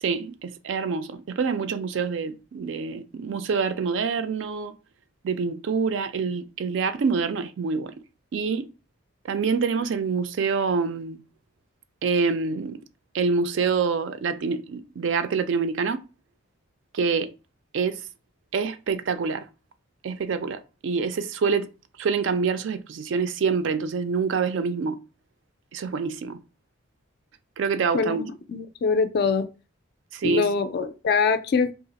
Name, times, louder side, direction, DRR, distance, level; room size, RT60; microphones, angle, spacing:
voice 1, 0.0-4.7 5.2-8.0 8.3-8.7 9.3-11.2 12.0-12.8 13.1-16.0 16.9-17.3 17.7-18.0 18.5-19.5 20.0-21.7 22.0-25.0 25.7-26.4 27.6-28.2 30.1-30.5, right 5 dB, 60° right, 0.3 m, -26 dB
voice 2, 27.9-29.5 30.2-31.7, left 5 dB, 50° left, 0.3 m, -24 dB
2.9 x 2.4 x 3.9 m
head